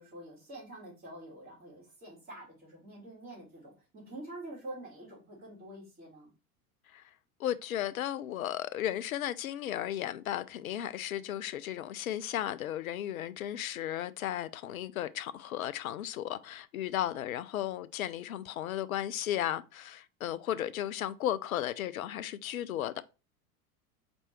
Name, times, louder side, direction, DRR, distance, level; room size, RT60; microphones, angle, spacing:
voice 1, 0.0-6.3, right 1 dB, 20° right, 2.6 m, -47 dB
voice 2, 7.4-23.0, left 12 dB, 65° left, 0.5 m, -35 dB
4.3 x 2.6 x 4.4 m
figure-of-eight pair, 85°, 44 cm